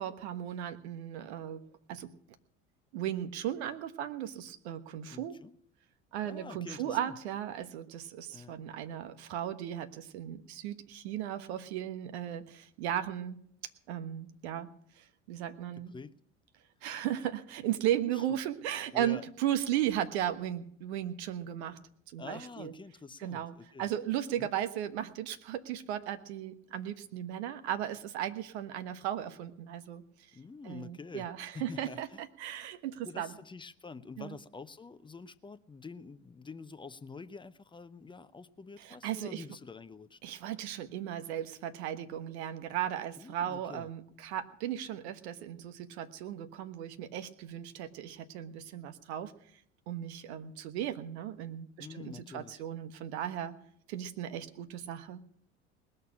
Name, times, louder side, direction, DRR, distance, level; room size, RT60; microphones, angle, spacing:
voice 1, 0.0-1.6 1.9-2.1 2.9-5.4 6.1-13.4 13.9-14.7 15.0-15.9 16.8-21.8 22.1-22.7 23.2-30.0 30.6-33.3 34.2-34.3 38.8-39.4 40.2-49.3 49.9-53.6 53.9-55.2, right 11 dB, 65° right, 1.3 m, -36 dB
voice 2, 5.1-5.6 6.2-7.1 8.3-8.6 15.8-16.1 18.1-18.4 18.9-19.2 22.2-23.9 24.4-24.5 30.3-31.3 31.5-32.2 33.0-40.2 43.2-43.9 51.8-52.6, left 4 dB, 15° left, 0.7 m, -47 dB
19.5 x 6.6 x 9.9 m
figure-of-eight pair, 65°, 36 cm